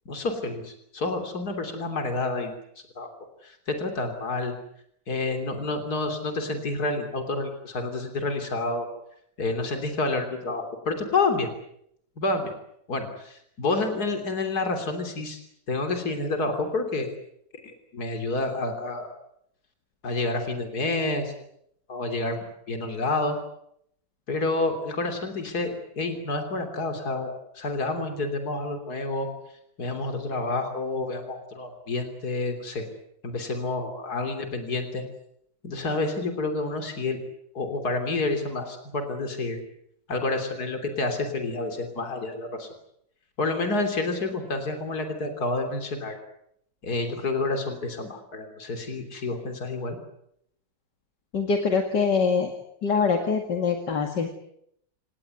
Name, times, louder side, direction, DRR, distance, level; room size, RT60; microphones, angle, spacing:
voice 1, 0.1-2.6 3.0-3.1 3.4-4.5 5.1-8.9 9.4-11.5 12.2-12.5 12.9-15.4 15.7-17.1 17.6-19.1 20.0-21.3 21.9-23.4 24.3-29.3 29.8-32.8 33.2-35.0 35.6-37.2 37.5-39.6 40.1-42.7 43.4-46.2 46.8-50.0, left 2 dB, 65° left, 6 dB, 3.8 m, -29 dB
voice 2, 51.3-52.5 52.8-54.3, left 5 dB, 80° left, 5 dB, 2.8 m, -24 dB
29.0 x 18.0 x 9.3 m, 0.74 s
omnidirectional pair, 1.8 m